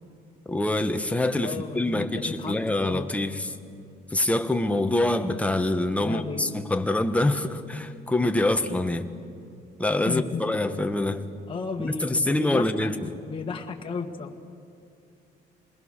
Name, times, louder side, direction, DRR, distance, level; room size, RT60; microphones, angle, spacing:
voice 1, 0.4-3.6 4.1-9.1 9.8-11.2 11.8-13.2, left 2 dB, 10° left, 6 dB, 1.3 m, -25 dB
voice 2, 1.4-3.1 6.0-6.5 10.0-10.4 11.5-14.3, left 4 dB, 30° left, 1 dB, 1.7 m, -34 dB
27.5 x 21.0 x 6.7 m, 2.6 s
cardioid pair, 110°, 17 cm